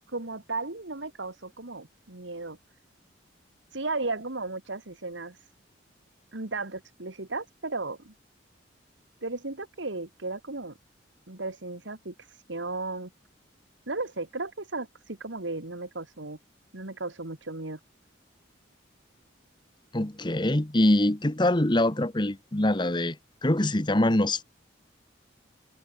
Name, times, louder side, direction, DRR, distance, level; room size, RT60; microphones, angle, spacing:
voice 1, 0.1-2.6 3.7-5.5 6.3-8.1 9.2-10.8 11.3-13.1 13.9-16.4 16.7-17.8, right 3 dB, 75° right, 2.2 m, -35 dB
voice 2, 19.9-23.2 23.4-24.4, left 1 dB, 25° left, 1.2 m, -24 dB
head